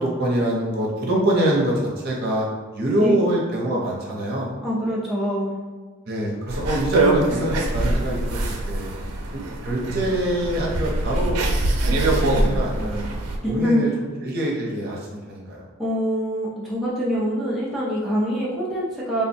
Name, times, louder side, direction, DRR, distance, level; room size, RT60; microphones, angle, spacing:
voice 1, 0.0-2.5 2.7-4.5 6.1-8.9 9.3-11.4 11.7-13.1 13.5-13.9 14.2-15.7, right 1 dB, 45° right, -3 dB, 0.8 m, -25 dB
voice 2, 4.6-5.5 13.4-13.8 15.8-19.2, equal, ahead, -8 dB, 0.5 m, -24 dB
sound 1, 6.5-13.4, right 2 dB, 90° right, 0.5 m, -23 dB
3.4 x 2.2 x 4.3 m, 1.4 s
head